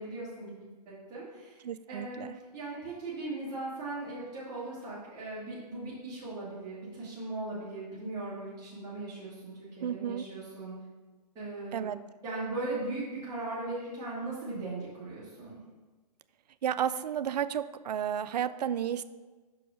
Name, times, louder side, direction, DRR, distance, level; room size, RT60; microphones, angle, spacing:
voice 1, 0.0-1.6 1.9-10.7 11.3-11.9 12.2-15.6, right 2 dB, 15° right, -11 dB, 1.9 m, -38 dB
voice 2, 1.6-2.3 9.8-10.2 11.7-12.0 16.6-19.0, right 9 dB, 75° right, 14 dB, 0.4 m, -32 dB
6.1 x 4.8 x 4.9 m, 1.3 s
hypercardioid pair, 140°, 21 cm